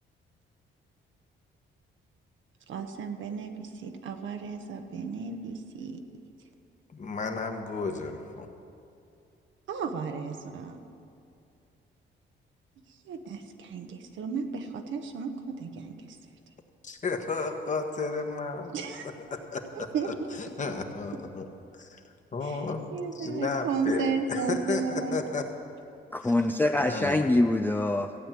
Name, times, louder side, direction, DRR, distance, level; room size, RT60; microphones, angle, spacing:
voice 1, 2.7-6.0 9.7-10.8 13.1-16.2 18.7-19.1 19.7-20.1 22.4-22.6 22.9-25.2, right 5 dB, 75° right, 6 dB, 1.2 m, -34 dB
voice 2, 6.9-8.5 16.8-21.5 21.8-22.0 22.3-25.5 26.2-26.3 26.8-27.2, left 4 dB, 40° left, 4 dB, 1.4 m, -33 dB
voice 3, 26.1-28.2, left 2 dB, 10° left, 6 dB, 0.5 m, -24 dB
15.0 x 8.6 x 7.5 m, 2.5 s
cardioid pair, 90°, 20 cm